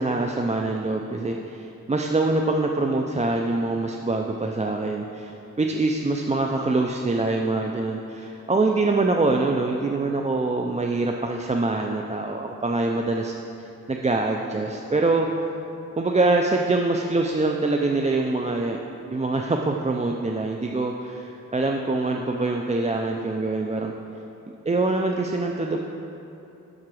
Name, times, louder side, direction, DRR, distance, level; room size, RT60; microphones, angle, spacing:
voice 1, 0.0-13.3 13.9-15.3 16.0-18.8 19.1-23.9 24.7-25.8, right 2 dB, 20° right, 1 dB, 0.4 m, -24 dB
7.4 x 5.9 x 6.2 m, 2.8 s
wide cardioid pair, 100°, 33 cm